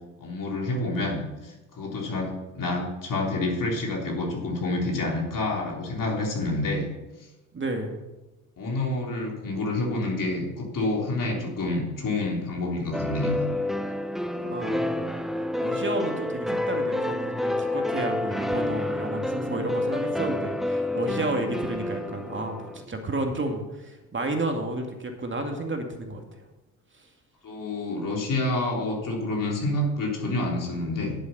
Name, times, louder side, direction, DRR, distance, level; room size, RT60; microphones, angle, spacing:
voice 1, 0.2-6.9 8.6-13.4 27.4-31.2, left 2 dB, 50° left, -1 dB, 3.7 m, -28 dB
voice 2, 7.5-8.0 14.2-15.2 15.6-26.4 27.0-27.1, right 2 dB, 30° right, 4 dB, 2.2 m, -31 dB
sound 1, 12.9-22.8, left 1 dB, ahead, 0.9 m, -29 dB
11.0 x 8.1 x 5.6 m, 1.1 s
hypercardioid pair, 50°, 40 cm